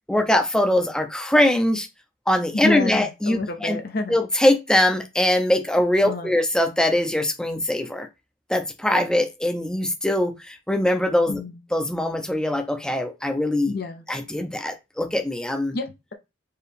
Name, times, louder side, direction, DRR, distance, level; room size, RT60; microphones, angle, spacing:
voice 1, 0.1-1.9 2.3-3.8 4.1-8.1 8.5-11.4 11.7-13.7 14.1-15.8, left 1 dB, 5° left, 0.5 m, -22 dB
voice 2, 2.5-4.2 6.0-6.4 11.3-11.6 13.7-14.0 15.7-16.1, left 3 dB, 50° left, 0.6 m, -29 dB
4.6 x 2.9 x 3.4 m
head